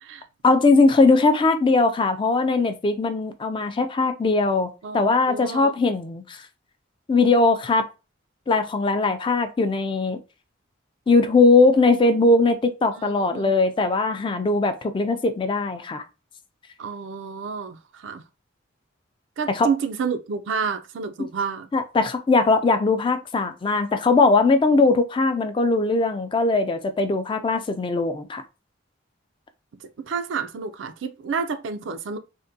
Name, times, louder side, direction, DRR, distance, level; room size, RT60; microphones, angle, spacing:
voice 1, 0.4-6.4 7.1-7.8 8.5-10.2 11.1-16.0 19.5-19.7 21.7-28.4, left 3 dB, 25° left, 0.3 m, -20 dB
voice 2, 5.3-5.7 13.0-13.5 16.8-18.2 19.4-21.7 30.0-32.2, right 5 dB, 70° right, 0.4 m, -29 dB
3.5 x 2.2 x 2.6 m
head